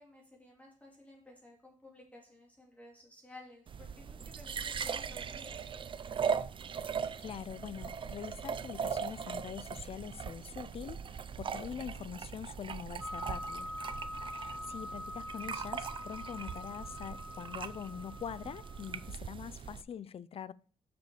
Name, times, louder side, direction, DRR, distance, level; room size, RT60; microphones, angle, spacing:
voice 1, 0.0-5.7, left 2 dB, 10° left, 2.8 m, -55 dB
sound 1, 3.7-19.8, right 6 dB, 40° right, 0.5 m, -40 dB
voice 2, 7.2-13.7 14.3-20.5, left 8 dB, 45° left, 0.4 m, -44 dB
sound 2, 13.0-19.1, left 1 dB, 5° right, 1.5 m, -44 dB
6.8 x 6.7 x 4.8 m
cardioid pair, 125°, 13 cm